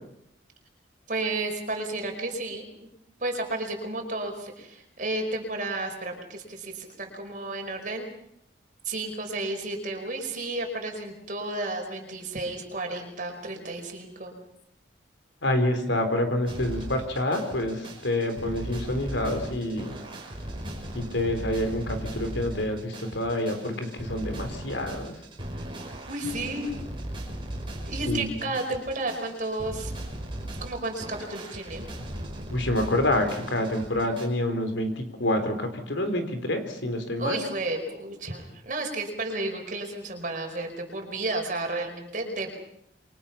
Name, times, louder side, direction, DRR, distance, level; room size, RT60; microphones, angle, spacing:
voice 1, 1.1-2.7 3.2-8.1 8.8-14.3 26.1-26.7 27.9-29.9 30.6-31.8 37.2-42.5, right 2 dB, 45° right, 3 dB, 5.3 m, -32 dB
voice 2, 15.4-19.9 20.9-25.1 28.1-28.3 32.5-37.4, left 1 dB, 85° left, 7 dB, 4.0 m, -27 dB
sound 1, 16.5-34.3, right 1 dB, 30° right, 5.3 m, -37 dB
28.0 x 24.0 x 5.8 m, 0.74 s
head